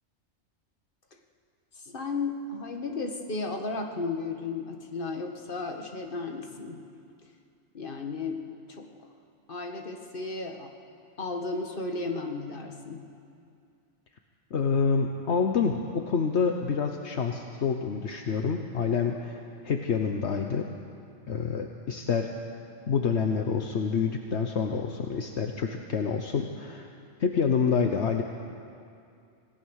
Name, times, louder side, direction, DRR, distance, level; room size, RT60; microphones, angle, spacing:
voice 1, 1.8-6.8 7.7-8.4 8.7-8.9 9.5-10.7 11.2-13.0, left 3 dB, 45° left, 4 dB, 1.8 m, -34 dB
voice 2, 14.5-20.7 21.3-22.3 22.9-26.9 27.2-28.2, left 5 dB, 70° left, 4 dB, 1.2 m, -27 dB
26.5 x 17.5 x 6.5 m, 2.5 s
omnidirectional pair, 1.2 m